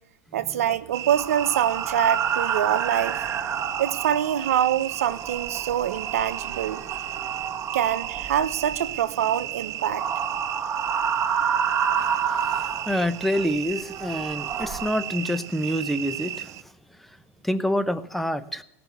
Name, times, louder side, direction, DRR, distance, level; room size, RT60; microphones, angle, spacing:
voice 1, 0.3-3.2 3.8-6.8 7.7-10.1, right 10 dB, 85° right, 11 dB, 0.9 m, -25 dB
sound 1, 0.9-16.6, right 12 dB, 45° right, 0.6 m, -35 dB
sound 2, 1.1-4.6 4.9-8.9 9.8-13.4 13.9-14.9, right 7 dB, 25° right, 1.4 m, -29 dB
voice 2, 12.0-16.5 17.0-17.1 17.4-18.6, equal, ahead, 11 dB, 0.9 m, -27 dB
17.5 x 5.9 x 8.3 m, 0.74 s
hypercardioid pair, 100°, 8 cm